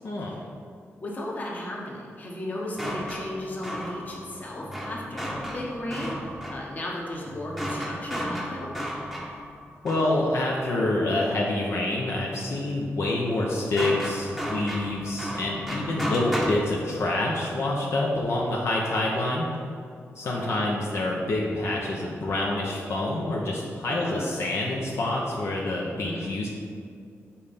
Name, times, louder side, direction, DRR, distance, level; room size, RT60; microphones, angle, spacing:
voice 1, 0.0-0.3 9.8-19.5 20.1-26.5, left 2 dB, 65° left, -3 dB, 0.9 m, -27 dB
voice 2, 1.0-8.8 20.2-20.6 23.8-24.3 25.8-26.3, left 1 dB, 35° left, -3 dB, 1.3 m, -35 dB
sound 1, 2.7-10.5 13.3-16.5, equal, ahead, 0.9 m, -34 dB
7.4 x 4.3 x 5.3 m, 2.3 s
wide cardioid pair, 145°, 5 cm